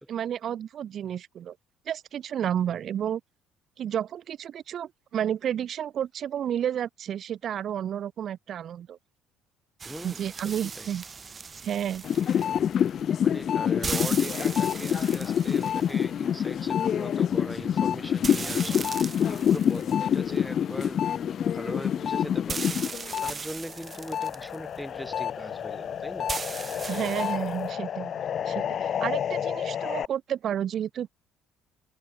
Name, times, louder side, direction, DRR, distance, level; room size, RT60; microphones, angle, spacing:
voice 1, 0.1-1.6 1.9-3.2 3.8-9.0 10.0-11.0 11.6-12.0 26.9-28.1 28.5-31.1, right 9 dB, 55° right, 0.9 m, -31 dB
voice 2, 9.8-10.9 13.0-21.0 21.5-26.3 29.4-29.5, equal, ahead, 2.9 m, -40 dB
sound 1, 9.8-27.7, right 5 dB, 35° right, 2.0 m, -39 dB
sound 2, 12.0-23.3 23.7-30.1, left 9 dB, 55° left, 1.3 m, -27 dB
open air
supercardioid pair, 75°, 0 cm